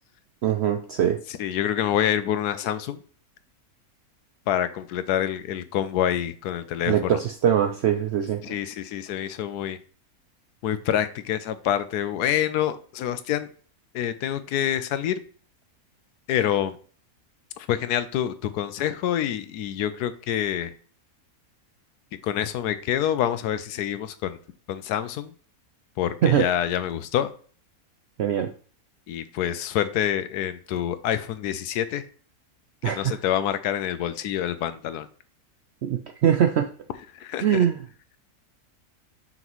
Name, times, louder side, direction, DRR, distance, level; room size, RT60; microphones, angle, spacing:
voice 1, 0.4-1.2 6.9-8.5 26.2-26.5 28.2-28.5 32.8-33.0 36.2-36.7 37.4-37.8, right 9 dB, 75° right, 6 dB, 0.6 m, -22 dB
voice 2, 1.3-3.0 4.5-7.2 8.4-9.8 10.6-13.5 13.9-15.2 16.3-16.8 17.6-20.7 22.2-24.4 24.7-25.3 26.0-27.3 29.1-32.0 32.8-35.1 37.1-37.6, left 10 dB, 90° left, 12 dB, 1.2 m, -27 dB
5.9 x 5.3 x 3.0 m, 0.43 s
omnidirectional pair, 1.6 m